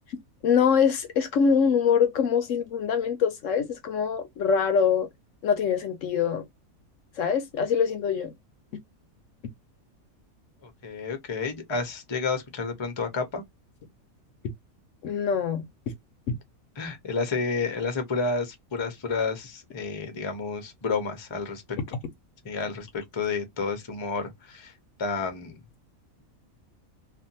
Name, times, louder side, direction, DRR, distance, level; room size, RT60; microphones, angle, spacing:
voice 1, 0.4-5.1 5.4-6.4 7.2-8.3 15.0-15.6 16.3-16.4, left 6 dB, 70° left, 0.9 m, -24 dB
voice 2, 10.6-13.4 16.8-21.8 22.4-24.7 25.0-25.6, left 4 dB, 30° left, 0.5 m, -30 dB
2.5 x 2.4 x 2.7 m
omnidirectional pair, 1.5 m